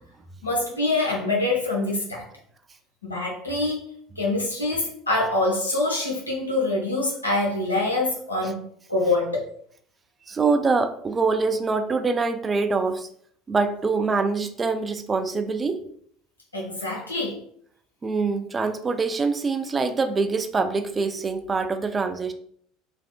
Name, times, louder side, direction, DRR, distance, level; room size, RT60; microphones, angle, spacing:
voice 1, 0.4-2.2 3.0-3.8 4.2-8.6 8.9-9.5 16.5-17.4, left 2 dB, 80° left, -2 dB, 0.7 m, -25 dB
voice 2, 10.3-13.1 13.5-15.8 18.0-22.3, right 4 dB, 25° right, 8 dB, 0.3 m, -24 dB
3.4 x 2.4 x 2.3 m, 0.63 s
figure-of-eight pair, 65°, 0 cm